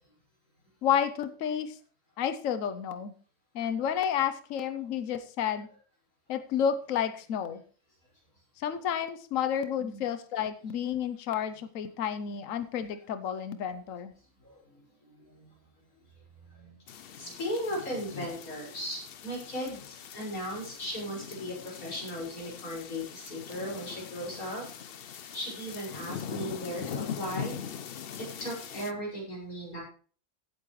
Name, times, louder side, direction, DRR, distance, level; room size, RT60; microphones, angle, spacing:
voice 1, 0.8-1.8 2.2-3.1 3.5-5.7 6.3-7.6 8.6-14.1, left 8 dB, 70° left, 11 dB, 1.2 m, -31 dB
voice 2, 16.5-16.8 17.2-19.8 20.1-24.6 25.3-27.6 28.1-29.8, equal, 85° left, -3 dB, 6.4 m, -37 dB
sound 1, 16.9-28.9, left 8 dB, 55° left, 0.7 m, -41 dB
16.0 x 8.6 x 3.2 m, 0.41 s
omnidirectional pair, 1.5 m